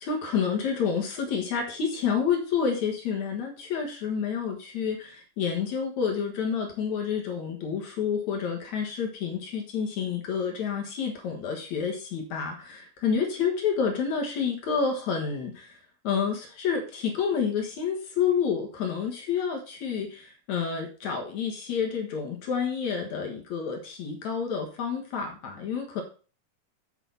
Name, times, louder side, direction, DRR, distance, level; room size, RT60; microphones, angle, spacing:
voice 1, 0.0-15.8 16.0-26.0, left 6 dB, 60° left, 2 dB, 2.4 m, -29 dB
8.4 x 5.9 x 5.4 m, 0.37 s
omnidirectional pair, 4.4 m